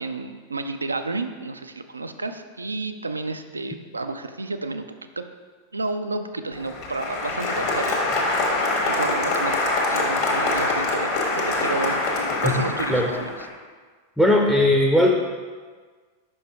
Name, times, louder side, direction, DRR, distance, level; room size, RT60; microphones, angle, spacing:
voice 1, 0.0-4.8 5.2-5.3 5.7-12.0 12.4-13.5, right 3 dB, 80° right, 8 dB, 0.3 m, -31 dB
Applause, 6.5-13.5, left 2 dB, 50° left, 1.2 m, -24 dB
voice 2, 14.2-15.1, left 1 dB, ahead, 1 dB, 0.6 m, -18 dB
5.6 x 5.3 x 3.4 m, 1.5 s
figure-of-eight pair, 90°, 0 cm